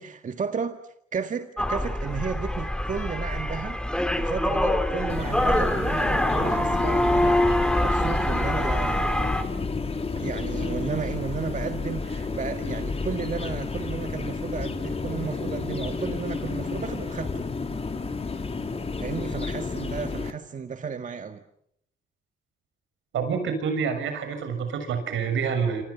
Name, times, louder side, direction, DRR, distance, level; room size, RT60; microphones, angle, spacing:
voice 1, 0.0-9.1 10.2-17.5 19.0-21.4, right 6 dB, 40° right, 1.8 m, -33 dB
sound 1, 1.6-9.4, left 1 dB, 5° left, 3.1 m, -25 dB
sound 2, 5.1-20.3, left 4 dB, 30° left, 3.3 m, -31 dB
voice 2, 23.1-25.8, right 6 dB, 75° right, 6.7 m, -27 dB
28.0 x 26.5 x 7.1 m
cardioid pair, 90°, 20 cm